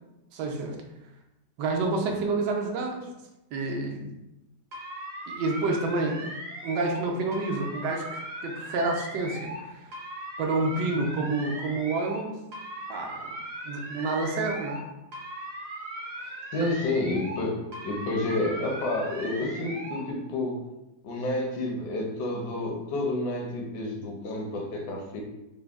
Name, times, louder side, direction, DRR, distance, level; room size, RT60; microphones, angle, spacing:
voice 1, 0.3-0.8 1.6-3.1 3.5-4.1 5.3-6.2 6.6-9.9 10.4-12.4 12.9-13.3 13.6-14.8 16.2-16.4, right 3 dB, 80° right, 1 dB, 1.2 m, -29 dB
sound 1, 4.7-7.0 7.3-9.6 9.9-12.2 12.5-14.8 15.1-17.4 17.7-20.0, right 1 dB, 60° right, 0.7 m, -39 dB
voice 2, 16.5-20.6 21.0-25.2, left 2 dB, 80° left, 0 dB, 1.3 m, -30 dB
3.8 x 2.1 x 3.4 m, 0.95 s
omnidirectional pair, 1.8 m